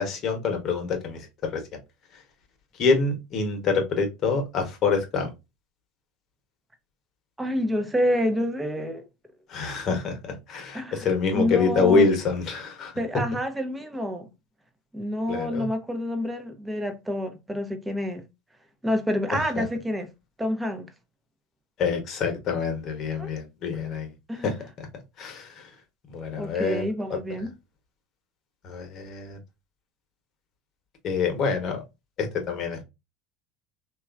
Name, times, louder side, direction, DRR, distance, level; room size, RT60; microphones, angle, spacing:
voice 1, 0.0-1.6 2.8-5.3 9.5-12.9 15.3-15.7 19.3-19.6 21.8-24.1 24.4-24.9 25.2-25.7 26.1-26.8 27.1-27.2 28.6-29.4 31.0-31.8 32.2-32.8, left 4 dB, 50° left, 0.9 m, -26 dB
voice 2, 7.4-9.1 10.7-11.1 11.3-12.1 13.0-14.3 14.9-18.2 18.8-20.1 20.4-20.9 23.2-23.3 24.3-24.5 26.4-27.5, equal, 10° right, 0.6 m, -28 dB
3.0 x 2.3 x 2.3 m
hypercardioid pair, 85°, 0 cm